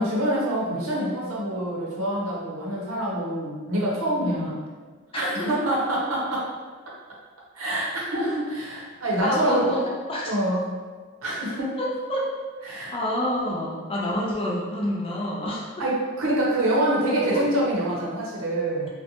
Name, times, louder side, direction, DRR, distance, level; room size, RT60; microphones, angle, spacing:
voice 1, 0.0-4.6 5.1-6.5 7.6-9.7 10.2-10.7 11.2-11.8 12.6-12.9 15.8-18.9, right 1 dB, 80° right, -4 dB, 0.7 m, -26 dB
voice 2, 5.1-5.5 9.2-10.3 11.8-12.3 12.9-15.8 17.3-17.4, left 1 dB, 25° left, -4 dB, 0.4 m, -28 dB
2.6 x 2.1 x 2.8 m, 1.4 s
head